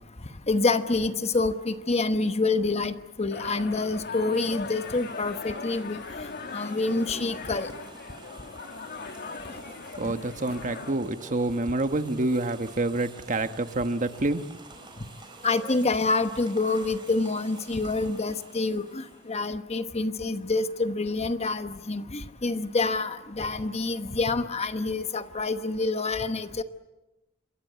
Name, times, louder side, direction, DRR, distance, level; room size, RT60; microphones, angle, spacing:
voice 1, 0.5-7.7 15.4-26.6, left 3 dB, 35° left, 10 dB, 1.1 m, -27 dB
sound 1, 3.3-10.9, left 4 dB, 55° left, 1.9 m, -39 dB
sound 2, 4.3-19.5, right 3 dB, 25° right, 4.4 m, -49 dB
voice 2, 10.0-14.4, right 2 dB, 40° right, 9 dB, 1.2 m, -27 dB
27.0 x 22.0 x 8.2 m, 1.0 s
head